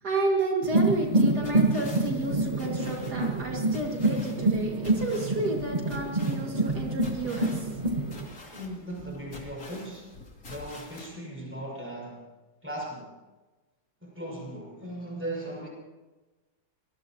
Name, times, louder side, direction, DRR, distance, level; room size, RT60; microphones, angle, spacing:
voice 1, 0.0-7.7, right 2 dB, 85° right, 0 dB, 3.0 m, -31 dB
sound 1, 0.6-8.3, right 2 dB, 30° right, 1.4 m, -27 dB
sound 2, 0.7-11.1, left 2 dB, 60° left, 3.2 m, -47 dB
voice 2, 7.8-8.2 8.5-10.1 10.5-12.2 12.6-13.1 14.0-15.7, right 1 dB, 5° right, -2 dB, 6.2 m, -38 dB
25.0 x 19.0 x 3.0 m, 1.2 s
omnidirectional pair, 1.7 m